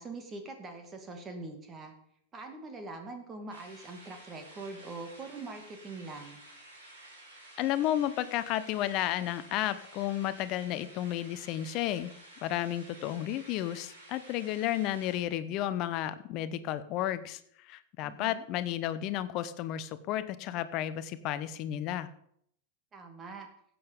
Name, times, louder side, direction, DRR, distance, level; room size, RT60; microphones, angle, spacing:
voice 1, 0.0-1.9 2.3-6.4 18.0-18.4 22.9-23.5, right 3 dB, 25° right, 5 dB, 2.4 m, -43 dB
sound 1, 3.5-15.2, right 1 dB, 70° right, 6.5 m, -52 dB
voice 2, 7.6-12.1 12.4-22.1, left 12 dB, 40° left, 14 dB, 0.9 m, -32 dB
15.0 x 8.8 x 5.2 m, 0.70 s
figure-of-eight pair, 90°, 0 cm